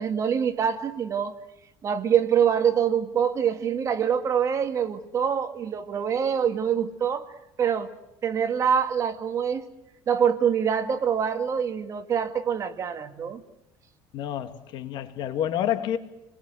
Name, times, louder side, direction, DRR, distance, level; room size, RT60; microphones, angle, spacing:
voice 1, 0.0-1.4 1.8-7.3 7.6-7.9 8.2-9.6 10.1-13.4, right 8 dB, 35° right, 2.1 m, -25 dB
voice 2, 14.1-16.0, left 10 dB, 60° left, 2.4 m, -28 dB
29.5 x 21.5 x 7.9 m
cardioid pair, 135°, 9 cm